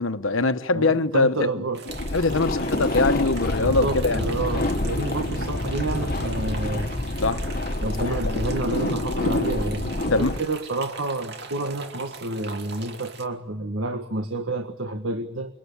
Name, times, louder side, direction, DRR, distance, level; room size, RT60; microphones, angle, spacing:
voice 1, 0.0-1.5 2.1-4.2 7.2-7.5 8.0-8.1 10.1-10.3, left 3 dB, 85° left, 1.2 m, -22 dB
voice 2, 0.7-1.8 3.6-7.1 7.8-15.6, right 2 dB, 85° right, 1.6 m, -29 dB
sound 1, 1.7-13.3, right 4 dB, 55° right, 2.5 m, -41 dB
sound 2, 1.9-10.4, left 1 dB, 45° left, 1.2 m, -27 dB
28.5 x 22.5 x 8.6 m
head